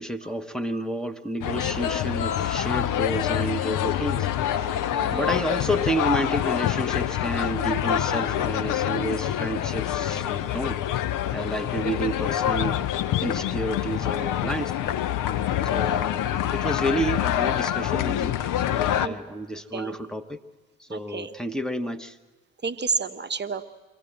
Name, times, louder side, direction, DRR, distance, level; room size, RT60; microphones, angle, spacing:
voice 1, 0.0-4.3 5.1-10.8 11.3-14.9 15.6-20.4 20.8-22.2, right 1 dB, ahead, 7 dB, 1.1 m, -30 dB
sound 1, 1.4-19.1, left 11 dB, 50° left, 0.8 m, -26 dB
voice 2, 2.4-2.9 4.6-5.4 17.8-17.9 19.0-19.2 19.7-20.0 20.9-21.3 22.6-23.6, right 5 dB, 25° right, 9 dB, 0.9 m, -32 dB
23.5 x 16.0 x 7.7 m, 1.3 s
figure-of-eight pair, 45°, 40 cm